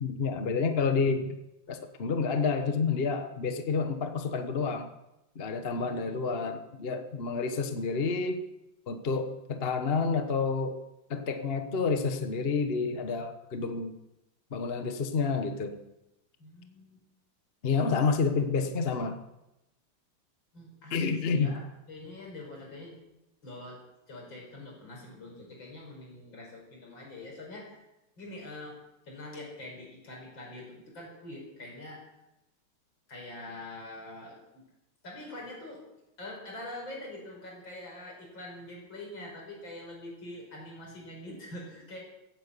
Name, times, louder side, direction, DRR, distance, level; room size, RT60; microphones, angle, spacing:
voice 1, 0.0-1.4 1.7-4.9 5.4-8.4 8.9-10.8 11.1-13.9 14.5-15.8 17.6-19.2 20.9-21.5, left 4 dB, 40° left, 7 dB, 0.9 m, -29 dB
voice 2, 5.6-6.4 16.4-17.0 20.5-21.6 21.9-23.0 23.4-23.8 24.1-27.9 28.2-32.1 33.1-34.6 35.0-35.8 36.2-42.0, left 1 dB, 60° left, -1 dB, 5.9 m, -44 dB
15.5 x 9.3 x 8.3 m, 0.92 s
omnidirectional pair, 2.4 m